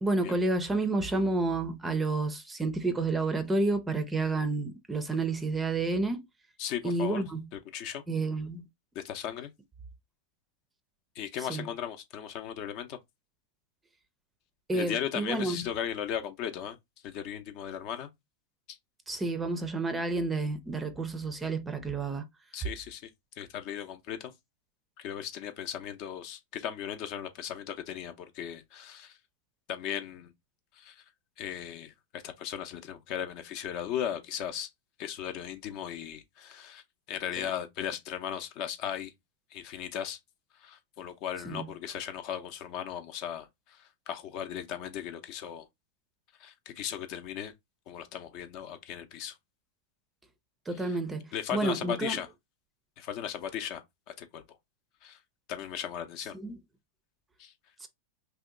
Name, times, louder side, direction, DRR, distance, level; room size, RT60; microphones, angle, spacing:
voice 1, 0.0-6.2 6.8-7.5 8.1-8.7 11.5-11.7 14.7-15.6 19.1-22.2 41.5-41.7 50.7-52.2 56.3-56.5 57.8-57.9, right 2 dB, 15° right, 0.5 m, -30 dB
voice 2, 6.6-7.2 7.5-8.0 8.9-9.5 11.1-13.0 14.7-16.8 17.0-18.1 18.7-18.8 22.5-23.1 23.4-24.3 25.0-29.2 29.7-30.3 30.7-31.0 31.4-34.7 35.0-36.8 37.1-39.1 39.5-40.2 40.5-45.7 46.4-47.5 47.9-49.4 50.7-51.0 51.3-52.3 53.0-54.6 55.0-55.2 55.5-56.4 57.4-57.5, left 9 dB, 50° left, 0.6 m, -37 dB
2.8 x 2.1 x 3.7 m
hypercardioid pair, 120°, 0 cm